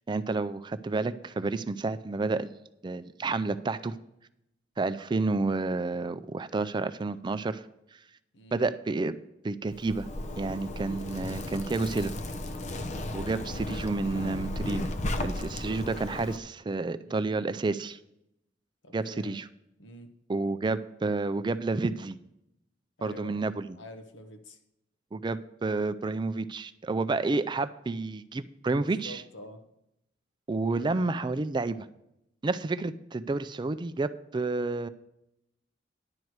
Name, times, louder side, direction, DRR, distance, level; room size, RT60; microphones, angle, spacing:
voice 1, 0.1-2.5 2.8-4.0 4.8-7.6 8.5-9.2 9.4-10.1 10.4-12.1 13.1-14.9 15.2-18.0 18.9-19.4 20.3-22.2 23.0-23.6 25.1-29.2 30.5-31.9 32.4-34.9, right 3 dB, 25° right, 12 dB, 0.4 m, -30 dB
Zipper (clothing), 9.7-16.4, left 1 dB, 40° left, 0.7 m, -35 dB
voice 2, 18.8-19.4 19.8-20.2 23.0-24.6 28.7-29.6 30.7-31.0, equal, 85° left, 6 dB, 1.2 m, -47 dB
10.5 x 4.6 x 8.0 m, 0.82 s
head